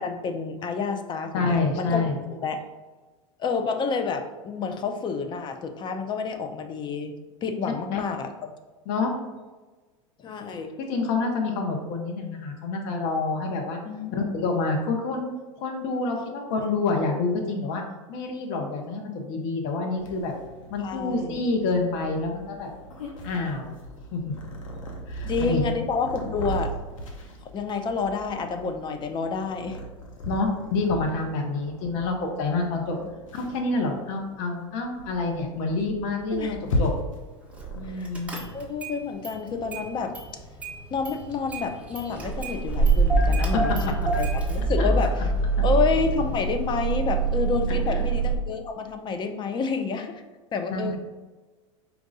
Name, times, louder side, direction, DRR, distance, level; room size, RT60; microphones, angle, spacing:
voice 1, 0.0-2.0 2.4-2.6 3.4-7.1 7.4-8.5 10.2-10.8 13.8-14.2 20.8-21.4 25.3-26.7 27.4-29.8 33.0-33.1 36.3-36.6 37.9-38.1 38.5-40.1 40.9-43.8 44.2-45.2 45.6-50.2 50.5-51.0, left 5 dB, 25° left, 6 dB, 0.5 m, -29 dB
voice 2, 1.3-2.2 7.9-8.0 8.9-9.2 10.9-13.8 14.1-15.3 15.6-17.8 18.1-20.3 20.7-22.7 23.2-23.7 24.1-24.3 25.1-25.6 30.3-33.0 33.3-36.9 37.7-38.3 43.5-43.7 44.8-44.9 47.9-48.0 50.7-51.0, left 3 dB, 55° left, 2 dB, 0.9 m, -27 dB
Purr, 20.0-38.7, equal, 85° left, 0.9 m, -37 dB
Car / Engine starting, 37.6-37.8 38.1-39.0 39.2-40.3 40.6-48.4, right 3 dB, 10° right, 1.0 m, -25 dB
4.5 x 2.6 x 3.9 m, 1.3 s
hypercardioid pair, 105°, 17 cm